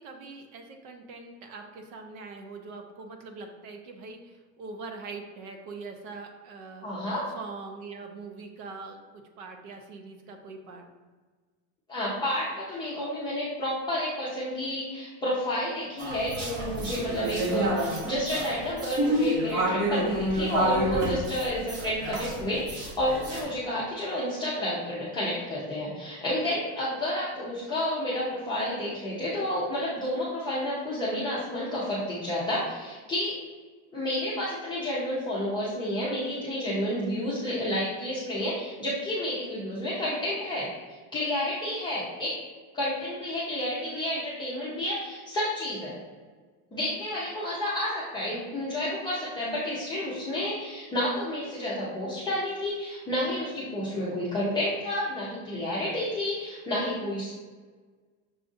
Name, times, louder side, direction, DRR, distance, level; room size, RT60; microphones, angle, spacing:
voice 1, 0.0-10.9, right 4 dB, 75° right, 4 dB, 0.8 m, -43 dB
voice 2, 6.8-7.2 11.9-33.3 33.9-40.7 41.1-42.3 42.7-46.0 46.7-57.3, left 1 dB, 10° left, -10 dB, 0.6 m, -30 dB
sound 1, 16.0-23.4, right 1 dB, 55° right, 1.1 m, -29 dB
6.3 x 2.5 x 2.5 m, 1.4 s
cardioid pair, 160°, 43 cm